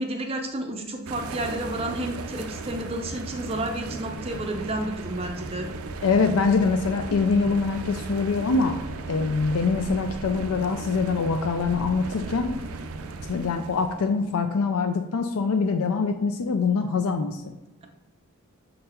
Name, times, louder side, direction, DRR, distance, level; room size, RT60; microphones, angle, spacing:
voice 1, 0.0-5.7, right 1 dB, 25° right, 4 dB, 0.5 m, -31 dB
sound 1, 1.1-14.2, right 3 dB, 80° right, 0.5 m, -36 dB
voice 2, 6.0-8.8 9.1-12.5 13.3-17.5, left 4 dB, 85° left, 6 dB, 0.4 m, -24 dB
6.6 x 3.9 x 4.3 m, 1.0 s
head